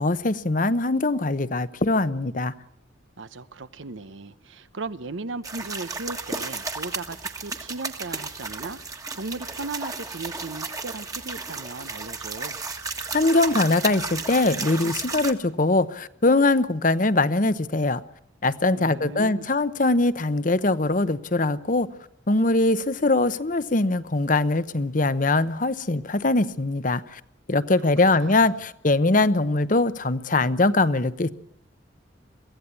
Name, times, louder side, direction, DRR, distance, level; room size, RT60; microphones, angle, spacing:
voice 1, 0.0-2.5 13.1-18.0 18.4-21.9 22.3-27.2 27.5-31.3, left 2 dB, 40° left, 0.9 m, -22 dB
voice 2, 3.2-12.6 18.7-19.5 27.8-27.9 28.2-28.4, right 3 dB, 75° right, 0.9 m, -37 dB
sound 1, 5.4-15.3, right 3 dB, 20° right, 1.5 m, -33 dB
23.5 x 16.0 x 8.4 m
head